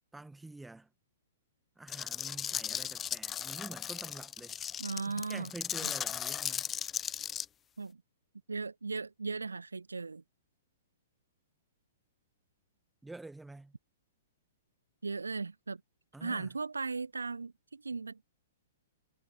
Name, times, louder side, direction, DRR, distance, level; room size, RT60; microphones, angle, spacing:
voice 1, 0.1-0.9 1.8-4.6 5.1-6.7 13.0-13.7 16.1-16.5, right 2 dB, 5° right, 1.7 m, -48 dB
sound 1, 1.9-7.4, left 9 dB, 20° left, 0.7 m, -37 dB
voice 2, 4.8-5.5 5.8-5.9 7.8-8.0 8.5-10.2 15.0-15.8 16.2-18.2, right 4 dB, 75° right, 0.4 m, -37 dB
figure-of-eight pair, 110°, 0 cm